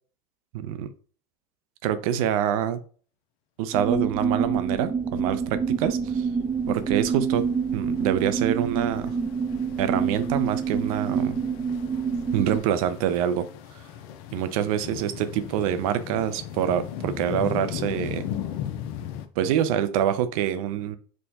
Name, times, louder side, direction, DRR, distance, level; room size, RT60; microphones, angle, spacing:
voice 1, 0.5-0.9 1.8-2.8 3.6-6.3 6.7-7.5 7.7-9.1 9.8-11.4 12.3-13.5 14.3-18.2 19.4-21.0, right 10 dB, 75° right, 12 dB, 0.5 m, -26 dB
sound 1, 3.7-12.6, right 6 dB, 20° right, 0.5 m, -27 dB
sound 2, 6.5-19.3, left 10 dB, 70° left, 0.5 m, -38 dB
4.3 x 2.2 x 2.7 m, 0.42 s
supercardioid pair, 95°, 18 cm